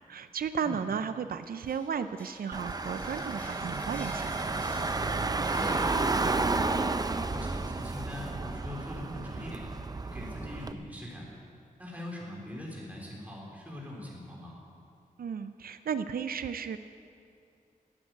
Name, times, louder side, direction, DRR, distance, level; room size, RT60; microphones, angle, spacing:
voice 1, 0.1-4.4 15.2-16.8, right 7 dB, 85° right, 11 dB, 0.5 m, -34 dB
sound 1, 1.4-6.6, equal, 10° left, 2.1 m, -49 dB
Car / Engine, 2.5-10.7, right 3 dB, 25° right, 0.5 m, -31 dB
voice 2, 5.5-6.9 7.2-9.7 10.1-11.3 11.8-14.5, left 1 dB, 10° right, -4 dB, 3.7 m, -42 dB
13.0 x 8.9 x 9.3 m, 2.4 s
wide cardioid pair, 105°, 15 cm